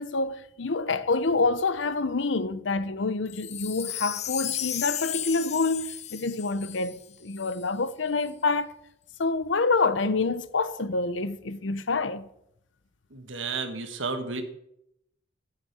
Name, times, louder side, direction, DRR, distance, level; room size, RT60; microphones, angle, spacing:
voice 1, 0.0-8.8 9.2-12.3, left 3 dB, 75° left, 0.8 m, -27 dB
Wind chime, 3.3-7.6 8.2-8.3, left 11 dB, 35° left, 0.6 m, -34 dB
voice 2, 13.1-14.4, right 4 dB, 80° right, 1.6 m, -32 dB
11.0 x 6.7 x 8.1 m
head